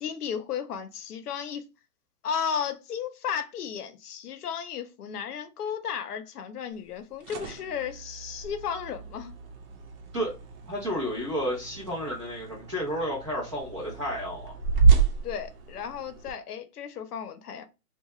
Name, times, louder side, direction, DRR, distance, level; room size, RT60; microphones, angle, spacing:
voice 1, 0.0-1.6 2.2-9.3 15.2-17.7, left 7 dB, 75° left, 0.7 m, -34 dB
sound 1, 6.9-16.3, right 5 dB, 60° right, 0.8 m, -29 dB
voice 2, 10.7-14.6, equal, 20° right, 0.5 m, -31 dB
2.8 x 2.2 x 3.0 m
hypercardioid pair, 170°, 47 cm